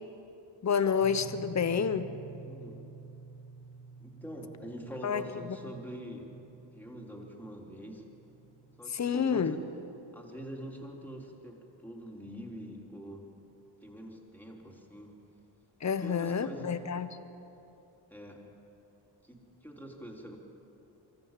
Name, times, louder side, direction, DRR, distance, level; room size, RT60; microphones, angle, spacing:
voice 1, 0.6-2.1 5.0-5.7 8.9-9.6 15.8-17.1, left 6 dB, 35° left, 11 dB, 1.1 m, -29 dB
sound 1, 1.0-11.1, right 4 dB, 90° right, 5.0 m, -50 dB
voice 2, 2.4-2.9 4.0-6.3 6.7-8.0 8.8-9.6 10.1-13.2 13.8-15.2 16.0-16.9 18.1-18.5 19.2-20.4, equal, 5° left, -1 dB, 3.6 m, -45 dB
25.0 x 14.0 x 7.5 m, 2.9 s
cardioid pair, 75°, 45 cm